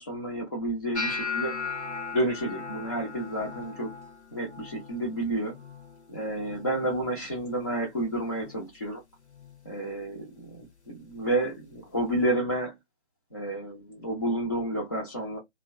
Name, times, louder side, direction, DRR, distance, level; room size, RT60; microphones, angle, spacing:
voice 1, 0.0-1.5 2.1-3.9 4.3-5.6 6.1-9.0 9.6-12.7 13.3-15.4, right 1 dB, 20° left, 0.6 m, -30 dB
sound 1, 0.9-7.0 7.3-7.8 8.2-8.7 9.4-9.6 11.3-11.4, left 4 dB, 85° left, 0.9 m, -38 dB
2.8 x 2.1 x 2.5 m
figure-of-eight pair, 145°, 33 cm